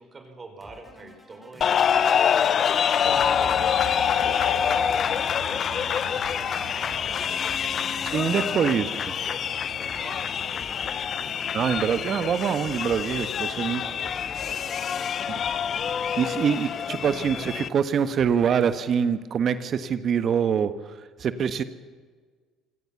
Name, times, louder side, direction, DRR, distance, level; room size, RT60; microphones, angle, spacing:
voice 1, 0.0-2.2 2.5-7.5 8.2-11.0 13.7-14.8, right 3 dB, 30° right, 5 dB, 5.3 m, -47 dB
sound 1, 0.6-19.1, left 1 dB, 10° left, 5.5 m, -50 dB
sound 2, 1.6-17.7, left 8 dB, 50° left, 0.8 m, -26 dB
sound 3, 3.0-16.3, right 7 dB, 75° right, 3.1 m, -45 dB
voice 2, 8.1-8.9 11.5-13.8 16.2-21.6, right 7 dB, 50° right, 12 dB, 1.4 m, -24 dB
25.5 x 18.0 x 7.2 m, 1.5 s
hypercardioid pair, 65°, 0 cm